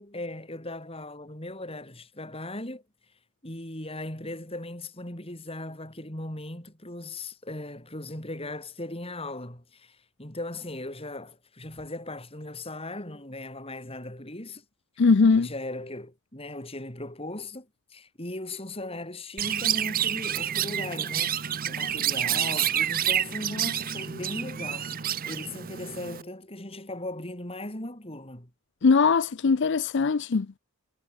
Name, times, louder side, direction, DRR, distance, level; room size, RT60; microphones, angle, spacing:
voice 1, 0.0-2.8 3.4-14.6 15.3-21.4 21.7-28.5, left 1 dB, 25° left, 5.4 m, -38 dB
voice 2, 15.0-15.5 28.8-30.5, left 4 dB, 55° left, 0.5 m, -20 dB
Chirp tweet, 19.4-26.2, right 10 dB, 40° right, 0.8 m, -28 dB
head